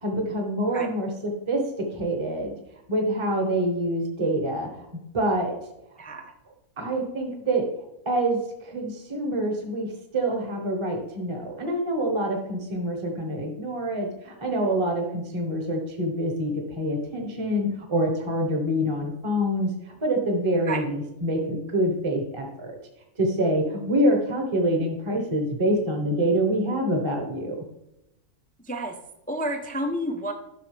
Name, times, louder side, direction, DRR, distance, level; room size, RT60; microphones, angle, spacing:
voice 1, 0.0-2.5 2.9-5.5 6.8-7.6 8.0-19.7 20.0-22.8 23.2-27.6, right 1 dB, 25° right, 2 dB, 1.1 m, -26 dB
voice 2, 6.0-6.3 20.7-20.8 28.7-29.0 29.3-30.3, right 1 dB, 10° left, 4 dB, 0.4 m, -30 dB
11.5 x 6.1 x 3.3 m, 0.86 s
omnidirectional pair, 1.5 m